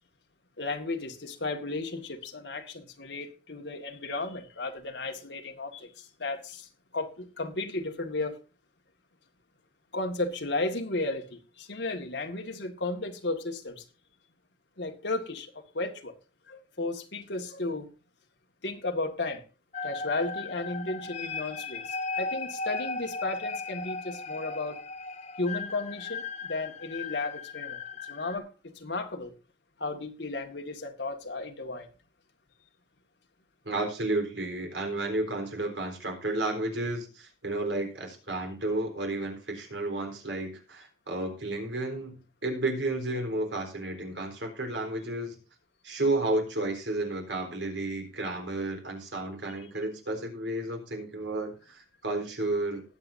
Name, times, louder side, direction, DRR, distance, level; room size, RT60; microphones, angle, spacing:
voice 1, 0.6-6.7 6.9-8.4 9.9-13.8 14.8-16.1 16.5-17.9 18.6-19.4 19.8-24.8 25.4-29.3 29.8-31.9, left 2 dB, 85° left, 4 dB, 1.9 m, -34 dB
sound 1, 19.7-28.4, left 4 dB, 40° left, 0.9 m, -36 dB
voice 2, 33.7-45.4 45.8-52.8, right 2 dB, 90° right, 3 dB, 3.9 m, -32 dB
19.5 x 7.8 x 2.6 m, 0.33 s
head